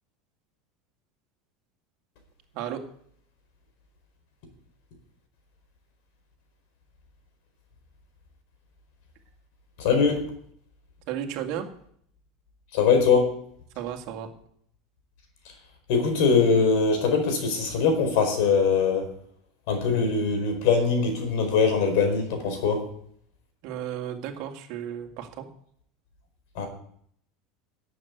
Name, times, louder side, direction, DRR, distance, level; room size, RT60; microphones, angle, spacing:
voice 1, 9.8-10.2 12.7-13.3 15.9-19.1 19.7-22.8 26.6-26.7, left 5 dB, 65° left, 5 dB, 4.4 m, -22 dB
voice 2, 11.1-11.7 13.8-14.3 23.6-25.5, right 10 dB, 60° right, 4 dB, 2.1 m, -33 dB
12.0 x 7.6 x 8.0 m, 0.66 s
supercardioid pair, 140°, 0 cm